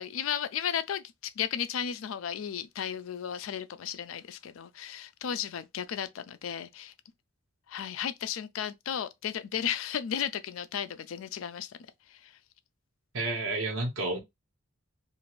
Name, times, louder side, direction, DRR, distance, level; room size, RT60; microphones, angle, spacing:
voice 1, 0.0-6.9 7.7-11.8 12.1-12.3, left 8 dB, 90° left, 0.4 m, -34 dB
voice 2, 13.1-14.2, right 2 dB, 80° right, 1.1 m, -30 dB
2.5 x 2.5 x 3.1 m
head